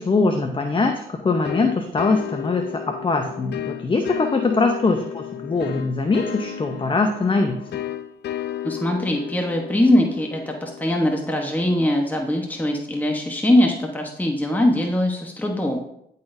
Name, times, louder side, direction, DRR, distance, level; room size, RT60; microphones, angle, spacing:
voice 1, 0.0-7.6, left 3 dB, 30° left, 5 dB, 0.7 m, -22 dB
sound 1, 1.4-11.9, left 10 dB, 70° left, 0.6 m, -33 dB
voice 2, 8.6-15.8, left 1 dB, 10° left, 1 dB, 1.0 m, -21 dB
10.0 x 4.0 x 2.6 m, 0.76 s
supercardioid pair, 60°, 18 cm